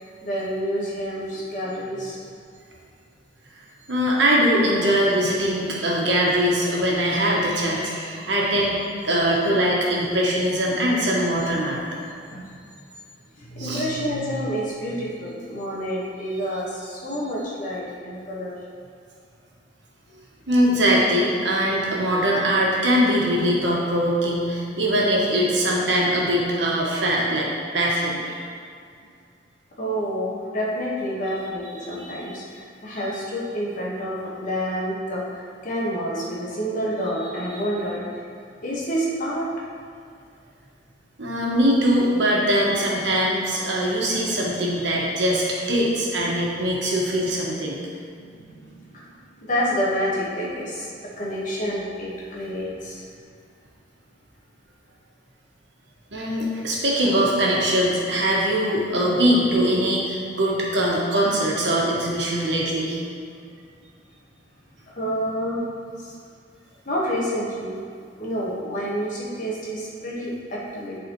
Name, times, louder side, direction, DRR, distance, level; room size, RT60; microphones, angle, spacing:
voice 1, 0.2-2.2 12.3-12.5 13.3-18.6 20.1-20.3 29.8-38.2 38.6-39.6 48.2-53.1 64.9-65.6 66.0-66.1 66.8-67.7 68.2-71.0, equal, 45° left, -5 dB, 1.4 m, -28 dB
voice 2, 3.9-11.8 13.6-13.8 20.5-28.4 32.0-32.2 41.2-47.8 56.1-63.0, equal, 70° right, -4 dB, 1.4 m, -22 dB
11.0 x 4.1 x 3.0 m, 2.2 s
head